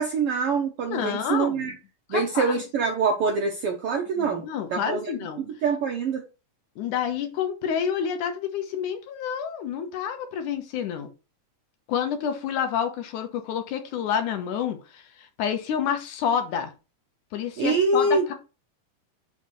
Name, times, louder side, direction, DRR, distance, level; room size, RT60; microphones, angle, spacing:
voice 1, 0.0-1.7 2.1-6.3 17.6-18.3, right 4 dB, 80° right, 2 dB, 1.3 m, -25 dB
voice 2, 0.9-1.7 2.1-2.6 4.2-5.4 6.8-11.1 11.9-16.7 17.3-18.3, left 8 dB, 75° left, 7 dB, 2.5 m, -29 dB
5.6 x 4.0 x 6.1 m, 0.31 s
omnidirectional pair, 3.7 m